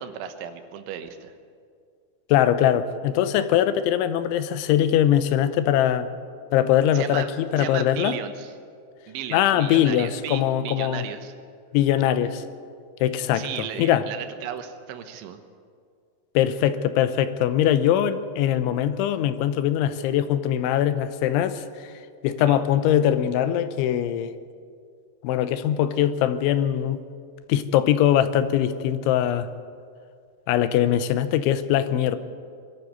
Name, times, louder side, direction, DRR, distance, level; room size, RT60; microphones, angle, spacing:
voice 1, 0.0-1.3 6.9-7.3 7.6-8.6 9.1-11.3 13.3-15.4 22.4-22.6, right 9 dB, 85° right, 8 dB, 3.5 m, -35 dB
voice 2, 2.3-6.1 6.5-7.2 7.5-8.2 9.3-11.1 11.7-12.4 13.0-14.0 16.3-21.9 22.2-24.3 25.2-27.0 27.5-29.5 30.5-32.2, left 11 dB, 85° left, 12 dB, 3.2 m, -22 dB
21.5 x 13.0 x 9.4 m, 2.2 s
omnidirectional pair, 5.3 m